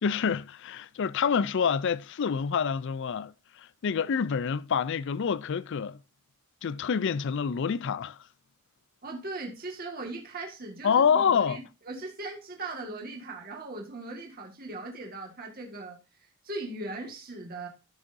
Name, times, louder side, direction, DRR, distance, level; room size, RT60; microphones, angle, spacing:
voice 1, 0.0-6.0 6.6-8.2 10.8-11.6, left 6 dB, 60° left, 0.4 m, -27 dB
voice 2, 9.0-17.7, right 2 dB, 45° right, 1.8 m, -39 dB
13.5 x 6.4 x 2.7 m
head